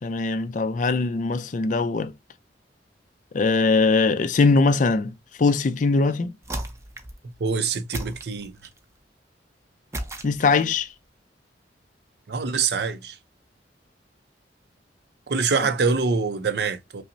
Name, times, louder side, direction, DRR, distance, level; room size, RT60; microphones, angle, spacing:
voice 1, 0.0-2.1 3.3-6.3 10.2-10.9 15.6-15.7, left 4 dB, 45° left, 0.4 m, -21 dB
sound 1, 6.4-7.2 7.9-8.8 9.9-10.8, right 1 dB, 15° right, 0.5 m, -35 dB
voice 2, 7.4-8.5 12.3-13.2 15.3-17.0, right 5 dB, 65° right, 0.5 m, -25 dB
5.4 x 2.0 x 2.5 m
head